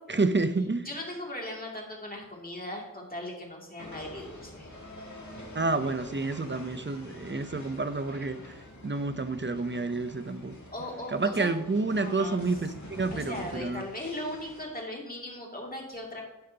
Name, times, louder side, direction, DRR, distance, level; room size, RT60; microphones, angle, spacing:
voice 1, 0.1-0.9 5.5-8.5 8.8-10.6 11.1-13.8, right 3 dB, 35° right, 11 dB, 0.7 m, -29 dB
voice 2, 0.8-4.7 10.7-11.5 11.9-12.4 13.1-16.2, left 1 dB, 25° left, -1 dB, 2.6 m, -38 dB
sound 1, 3.8-14.7, left 1 dB, 60° left, 2.3 m, -46 dB
11.5 x 9.2 x 2.9 m, 1.0 s
wide cardioid pair, 55°, 33 cm